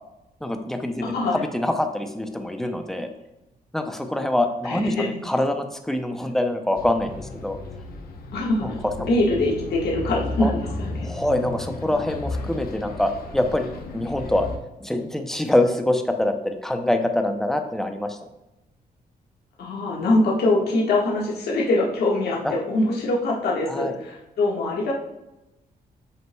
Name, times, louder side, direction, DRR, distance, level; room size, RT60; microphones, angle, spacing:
voice 1, 0.4-3.1 3.7-7.6 8.6-8.7 9.0-9.1 10.4-10.5 11.0-14.5 14.8-18.2 22.4-22.5 23.7-23.9, left 1 dB, 5° left, 5 dB, 0.6 m, -25 dB
voice 2, 1.1-1.4 4.6-5.1 8.3-8.8 9.1-11.1 19.6-24.9, left 2 dB, 85° left, -3 dB, 1.6 m, -23 dB
Bus, 6.8-14.6, left 2 dB, 65° left, 0.9 m, -34 dB
7.6 x 5.6 x 2.3 m, 0.96 s
cardioid pair, 130°, 16 cm